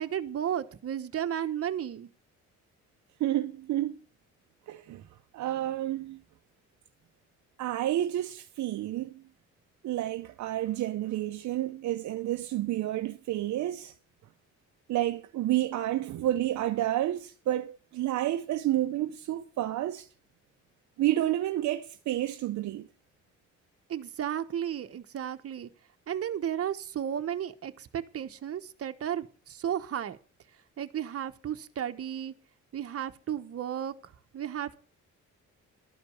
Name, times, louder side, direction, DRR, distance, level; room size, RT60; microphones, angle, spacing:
voice 1, 0.0-2.1 23.9-25.7 26.1-30.2 30.8-32.3 32.7-34.8, right 9 dB, 50° right, 1.1 m, -34 dB
voice 2, 3.2-4.0 4.7-5.0 5.3-6.2 7.6-9.1 9.8-13.9 14.9-20.1 21.0-22.9, right 13 dB, 70° right, 0.6 m, -30 dB
12.5 x 5.2 x 7.9 m
cardioid pair, 90°, 30 cm